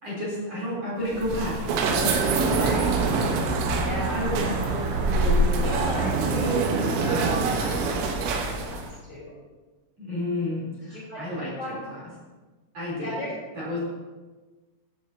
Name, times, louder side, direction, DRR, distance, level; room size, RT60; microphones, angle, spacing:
voice 1, 0.0-2.6 4.1-7.0 10.0-12.0 12.7-13.2 13.6-13.8, left 1 dB, 35° right, -7 dB, 4.4 m, -31 dB
sound 1, 1.0-8.9, right 3 dB, 90° right, 3.8 m, -25 dB
voice 2, 2.6-2.9 3.8-4.2 5.6-6.7 7.0-7.3 7.6-9.3 10.8-11.8 13.0-13.3, equal, 40° left, -7 dB, 4.1 m, -36 dB
15.5 x 10.5 x 2.9 m, 1.3 s
omnidirectional pair, 5.8 m